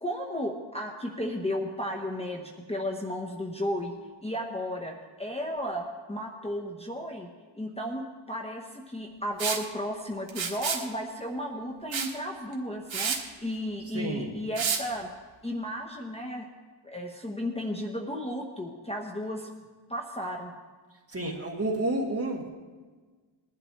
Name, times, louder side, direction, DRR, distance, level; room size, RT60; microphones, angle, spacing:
voice 1, 0.0-3.9 4.2-7.3 7.5-15.1 15.4-16.5 16.8-19.5 19.9-20.5, equal, 15° left, 0 dB, 1.0 m, -34 dB
Liquid, 9.4-9.6 10.3-10.9 11.9-12.1 12.5-12.6 12.9-13.2 14.6-14.8, right 6 dB, 70° right, 1.5 m, -29 dB
voice 2, 13.9-14.3 21.1-22.5, right 1 dB, 30° right, 0 dB, 2.0 m, -30 dB
20.5 x 11.5 x 3.2 m, 1.4 s
wide cardioid pair, 120°, 48 cm